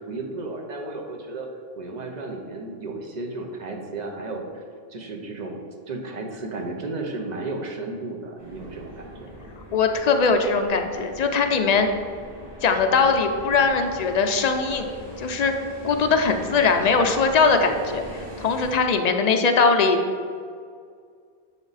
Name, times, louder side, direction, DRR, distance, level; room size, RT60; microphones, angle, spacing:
voice 1, 0.0-1.5 1.8-4.6 4.9-5.6 5.9-9.5, right 2 dB, 45° right, 2 dB, 0.8 m, -33 dB
sound 1, 8.4-18.7, equal, 25° right, 1.5 m, -41 dB
voice 2, 9.7-11.9 12.6-14.9 15.2-15.5 15.8-20.0, left 4 dB, 55° left, 5 dB, 0.5 m, -21 dB
7.2 x 3.6 x 4.0 m, 2.1 s
omnidirectional pair, 1.0 m